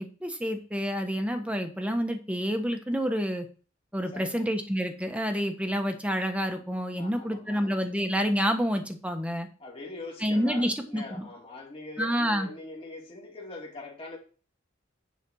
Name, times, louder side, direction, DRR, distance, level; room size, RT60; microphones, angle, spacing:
voice 1, 0.0-3.5 3.9-9.5 10.2-11.3 12.0-12.5, equal, 5° right, 1.2 m, -28 dB
voice 2, 4.1-4.4 7.0-7.8 9.6-14.2, left 2 dB, 30° left, 2.6 m, -42 dB
9.9 x 4.2 x 6.4 m
head